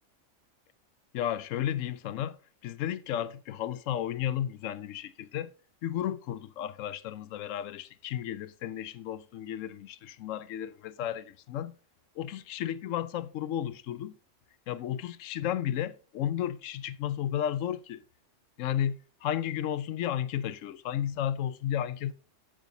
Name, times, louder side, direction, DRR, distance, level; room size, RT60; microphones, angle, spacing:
voice 1, 1.1-2.4 2.6-5.5 5.8-11.8 12.2-14.1 14.7-18.0 18.6-22.1, left 10 dB, 85° left, 0.9 m, -33 dB
15.0 x 5.1 x 2.6 m
omnidirectional pair, 1.3 m